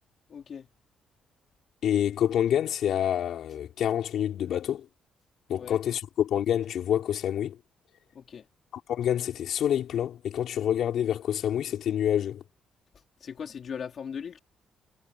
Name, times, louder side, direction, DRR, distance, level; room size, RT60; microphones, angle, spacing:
voice 1, 0.3-0.7 5.5-5.8 8.1-8.5 13.2-14.4, left 7 dB, 55° left, 3.4 m, -38 dB
voice 2, 1.8-4.9 5.5-7.6 8.9-12.4, left 10 dB, 70° left, 4.1 m, -27 dB
cardioid pair, 90°, 0 cm